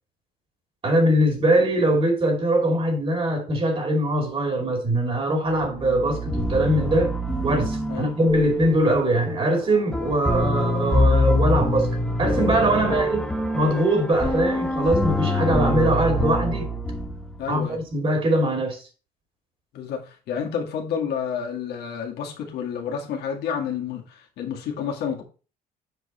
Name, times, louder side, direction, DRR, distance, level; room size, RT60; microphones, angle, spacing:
voice 1, 0.8-7.1 7.4-13.3 13.5-16.7 17.5-18.8, right 1 dB, 35° right, 2.7 m, -22 dB
sound 1, 5.5-17.6, left 1 dB, 5° left, 1.3 m, -25 dB
voice 2, 17.4-17.8 19.7-25.2, left 7 dB, 75° left, 2.0 m, -30 dB
7.6 x 5.1 x 4.2 m
cardioid pair, 110°, 17 cm